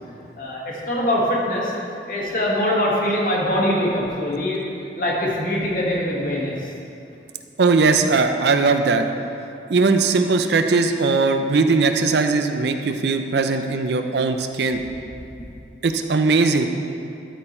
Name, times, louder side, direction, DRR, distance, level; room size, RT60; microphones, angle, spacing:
voice 1, 0.4-1.7 2.1-4.6 5.0-6.7, left 1 dB, 50° left, -4 dB, 1.5 m, -23 dB
voice 2, 7.6-9.0 9.7-14.8 15.8-16.7, right 4 dB, 70° right, 7 dB, 0.5 m, -19 dB
12.0 x 4.4 x 4.3 m, 2.6 s
head